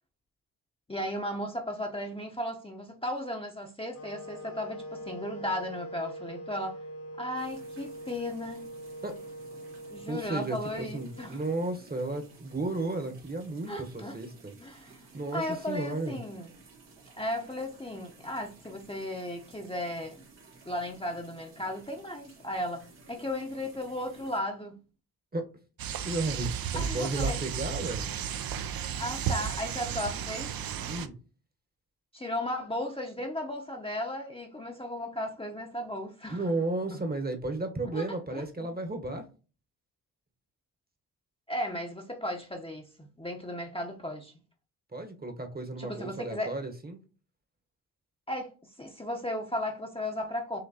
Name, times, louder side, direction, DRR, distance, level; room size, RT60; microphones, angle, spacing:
voice 1, 0.9-6.8 7.2-8.6 9.9-11.4 13.7-14.2 14.6-15.0 15.3-16.5 17.2-20.2 20.6-24.8 26.7-27.4 29.0-30.5 32.1-36.4 36.9-37.0 37.9-38.7 41.5-44.3 45.8-46.6 48.3-50.6, left 1 dB, 15° left, 0.8 m, -35 dB
sound 1, 3.9-11.9, right 1 dB, 80° left, 2.1 m, -43 dB
sound 2, 7.4-24.4, right 3 dB, 85° right, 1.6 m, -55 dB
voice 2, 10.1-14.5 15.1-16.2 25.3-25.4 26.0-28.1 30.9-31.1 36.3-39.2 44.9-47.0, right 2 dB, 20° right, 1.0 m, -33 dB
sound 3, 25.8-31.1, right 8 dB, 55° right, 0.6 m, -33 dB
5.9 x 2.9 x 2.8 m
supercardioid pair, 45°, 42 cm